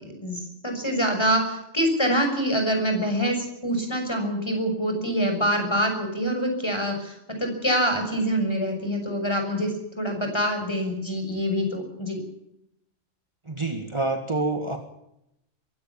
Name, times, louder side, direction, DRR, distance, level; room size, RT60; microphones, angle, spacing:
voice 1, 0.2-12.2, equal, 20° left, 4 dB, 6.6 m, -25 dB
voice 2, 13.5-14.8, right 3 dB, 25° right, 5 dB, 1.9 m, -27 dB
22.5 x 16.5 x 7.3 m, 0.80 s
omnidirectional pair, 1.3 m